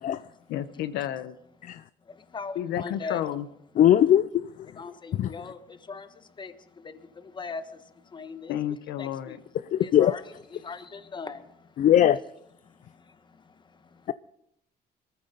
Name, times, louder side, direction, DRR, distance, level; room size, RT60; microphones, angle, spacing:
voice 1, 0.5-1.4 2.6-3.4 8.5-9.4, left 11 dB, 85° left, 1.0 m, -31 dB
voice 2, 2.3-3.2 4.8-5.6 5.9-6.1 6.4-6.5 7.4-7.6 8.1-8.5 9.0-9.4 9.8-10.2 10.5-11.4, left 4 dB, 25° left, 1.3 m, -38 dB
voice 3, 3.8-4.5 5.2-5.3 9.7-10.1 11.8-12.2, left 11 dB, 50° left, 0.5 m, -19 dB
21.5 x 14.5 x 4.0 m
cardioid pair, 110°, 17 cm